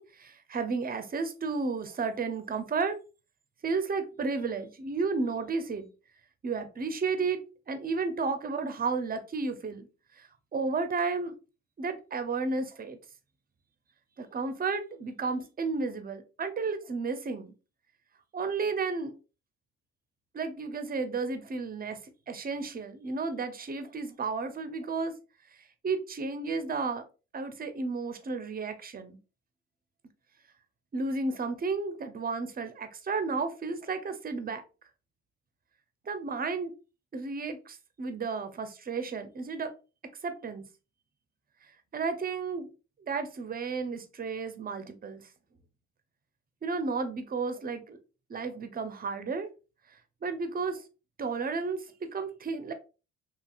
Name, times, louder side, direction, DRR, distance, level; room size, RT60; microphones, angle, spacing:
voice 1, 0.0-3.0 3.6-5.9 6.4-7.4 7.7-9.9 10.2-10.3 10.5-11.3 11.8-13.0 14.2-17.5 18.3-19.1 20.3-22.0 22.3-25.1 25.8-27.0 27.3-29.2 30.9-34.6 36.1-36.7 37.1-39.7 40.2-40.6 41.9-42.7 43.0-45.2 46.6-48.0 48.3-49.5 50.2-50.8 51.2-52.7, right 4 dB, 30° right, 9 dB, 0.5 m, -32 dB
2.9 x 2.7 x 2.3 m, 0.32 s
cardioid pair, 90°, 30 cm